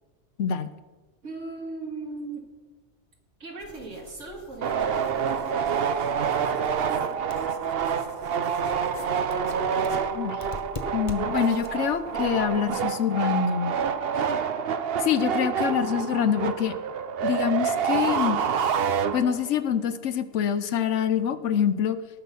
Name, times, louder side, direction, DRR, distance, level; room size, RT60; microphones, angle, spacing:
voice 1, 1.2-2.5 3.4-8.5, right 3 dB, 90° right, 1 dB, 2.5 m, -40 dB
sound 1, 3.6-12.8, left 2 dB, 30° left, 0.9 m, -44 dB
sound 2, 4.6-19.6, right 7 dB, 60° right, 0.9 m, -27 dB
voice 2, 10.9-13.8 15.0-16.8 17.2-18.4 19.1-22.0, left 8 dB, 75° left, 12 dB, 1.1 m, -25 dB
18.5 x 6.3 x 5.5 m, 1.3 s
omnidirectional pair, 1.2 m